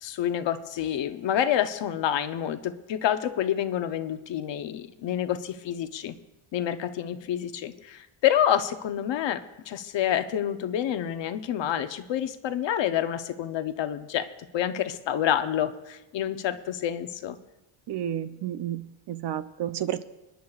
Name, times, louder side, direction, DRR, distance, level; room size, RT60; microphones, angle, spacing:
voice 1, 0.0-6.2 6.5-14.3 14.5-17.4, left 10 dB, 60° left, 10 dB, 0.8 m, -28 dB
voice 2, 17.9-20.0, right 11 dB, 55° right, 11 dB, 0.7 m, -31 dB
25.5 x 10.5 x 2.4 m, 1.0 s
cardioid pair, 150°, 50 cm